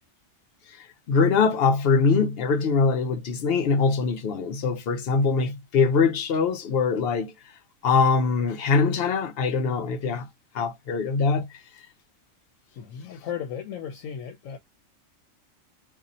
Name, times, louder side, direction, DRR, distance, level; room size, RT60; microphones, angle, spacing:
voice 1, 0.7-7.3 7.8-10.3 10.5-11.6, left 4 dB, 60° left, 0.7 m, -23 dB
voice 2, 12.7-14.6, left 8 dB, 80° left, 1.0 m, -35 dB
2.6 x 2.5 x 4.0 m
omnidirectional pair, 1.4 m